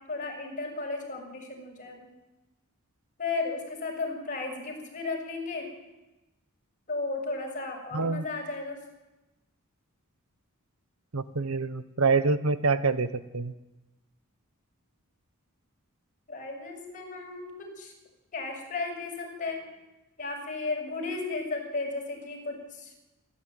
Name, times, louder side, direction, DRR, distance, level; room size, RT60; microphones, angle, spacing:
voice 1, 0.0-2.1 3.2-5.7 6.9-8.8 16.3-17.9 18.3-19.6 20.2-22.9, left 3 dB, 35° left, 0 dB, 6.8 m, -34 dB
voice 2, 7.9-8.2 11.1-13.5, right 4 dB, 70° right, 13 dB, 1.0 m, -26 dB
28.0 x 14.5 x 9.1 m, 1.1 s
head